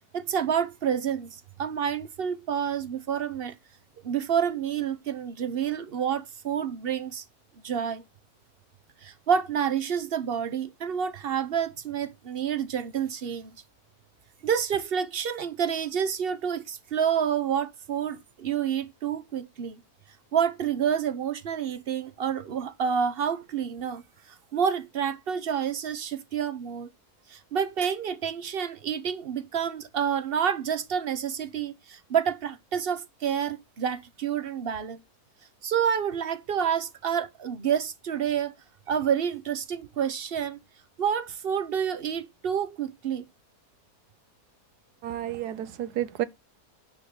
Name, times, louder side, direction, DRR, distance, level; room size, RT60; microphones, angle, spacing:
voice 1, 0.1-3.5 4.0-7.2 7.6-8.0 9.0-13.5 14.4-19.8 20.3-24.0 24.3-26.9 27.3-35.0 35.6-38.5 38.9-40.6 41.0-43.3, right 8 dB, 50° right, 0.8 m, -28 dB
voice 2, 45.0-46.3, right 12 dB, 90° right, 1.3 m, -31 dB
9.6 x 3.8 x 6.5 m
omnidirectional pair, 1.7 m